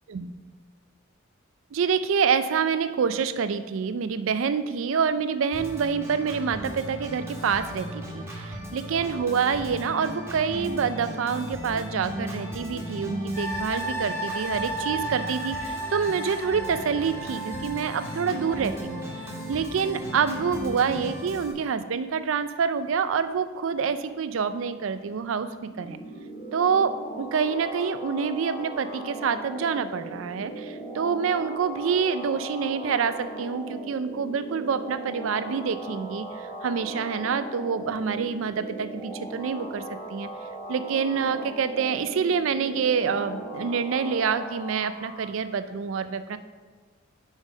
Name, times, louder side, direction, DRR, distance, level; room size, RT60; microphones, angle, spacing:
voice 1, 1.7-26.0 26.5-39.8 40.1-40.3 40.7-46.4, right 6 dB, 65° right, 11 dB, 0.4 m, -27 dB
Organ, 5.5-21.5, equal, 15° right, 1.5 m, -37 dB
sound 1, 13.3-20.6 21.0-21.1, right 1 dB, 15° left, 1.2 m, -35 dB
sound 2, 25.4-45.3, right 2 dB, 35° left, 1.3 m, -38 dB
5.4 x 5.3 x 5.1 m, 1.4 s
head